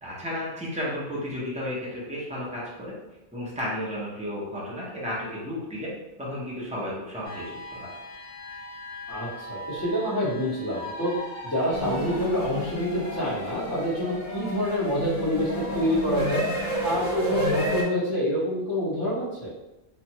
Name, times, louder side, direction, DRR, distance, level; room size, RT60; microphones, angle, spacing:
voice 1, 0.0-3.0 3.3-5.9 6.2-7.9, left 1 dB, 10° right, -7 dB, 0.5 m, -33 dB
sound 1, 7.2-17.9, left 1 dB, 55° left, 0.8 m, -37 dB
voice 2, 9.1-11.1 11.4-16.4 16.8-19.5, left 1 dB, 15° left, -14 dB, 1.0 m, -27 dB
sound 2, 11.7-17.8, right 1 dB, 40° right, 1.1 m, -31 dB
2.4 x 2.2 x 2.8 m, 0.98 s
omnidirectional pair, 1.3 m